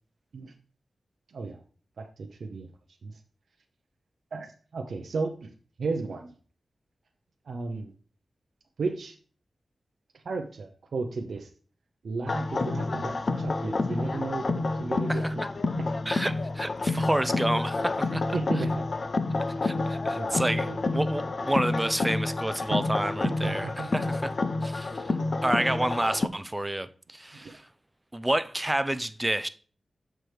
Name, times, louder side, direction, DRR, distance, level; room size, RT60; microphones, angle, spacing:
voice 1, 1.3-1.6 2.0-2.7 3.0-3.2 4.3-5.5 5.8-6.3 7.4-7.9 8.8-9.1 10.1-11.5 12.0-15.4 15.8-16.0 18.3-18.8 19.5-19.6 20.1-20.8 22.7-22.8 23.2-23.9 27.3-27.5, right 4 dB, 80° right, 0.6 m, -34 dB
sound 1, 12.3-26.3, left 3 dB, 50° left, 0.4 m, -29 dB
voice 2, 15.1-15.5 16.1-18.6 19.6-24.3 24.6-25.2 25.4-27.7 28.1-29.5, right 1 dB, 15° right, 0.4 m, -29 dB
7.9 x 4.5 x 3.3 m
wide cardioid pair, 75°, 0 cm